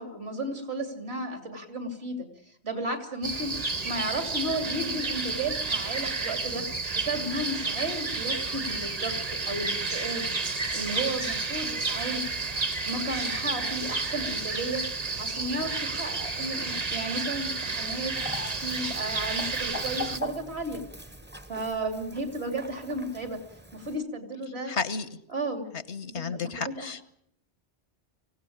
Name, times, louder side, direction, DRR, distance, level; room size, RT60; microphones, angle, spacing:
voice 1, 0.0-3.5 3.8-12.2 12.5-18.1 18.6-20.8 21.5-23.4 23.7-24.7 25.3-25.6 26.1-26.5 26.8-26.9, right 1 dB, 70° right, 5 dB, 3.4 m, -34 dB
sound 1, 3.2-20.2, right 3 dB, 40° right, 1.1 m, -31 dB
Chicken rooster, 18.2-24.0, left 2 dB, 10° right, 0.7 m, -41 dB
voice 2, 24.7-25.1 25.9-27.0, left 5 dB, 85° left, 14 dB, 1.5 m, -32 dB
24.5 x 17.0 x 8.7 m, 0.74 s
omnidirectional pair, 1.1 m